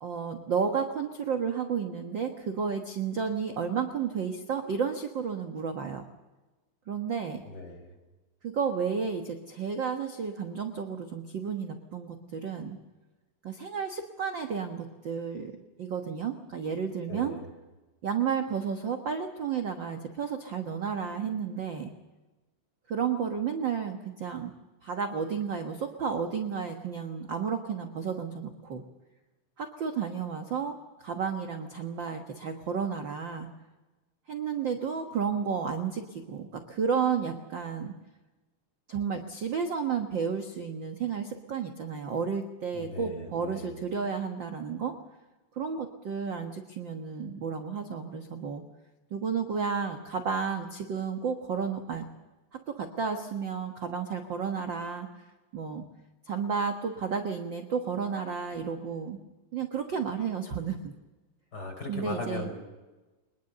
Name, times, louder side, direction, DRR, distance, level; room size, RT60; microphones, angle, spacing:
voice 1, 0.0-6.0 6.9-7.4 8.4-12.8 13.4-15.5 15.8-17.4 18.0-21.9 22.9-24.5 24.8-28.9 29.6-30.7 31.0-33.5 34.3-37.9 38.9-44.9 45.5-48.6 49.1-52.1 52.5-55.1 55.5-55.8 56.2-59.2 59.5-60.9 61.9-62.5, right 6 dB, 50° right, 5 dB, 1.5 m, -32 dB
voice 2, 7.4-7.9 17.1-17.4 42.7-43.7 61.5-62.5, left 2 dB, 30° left, 2 dB, 5.9 m, -38 dB
23.5 x 21.0 x 6.8 m, 1.1 s
omnidirectional pair, 3.8 m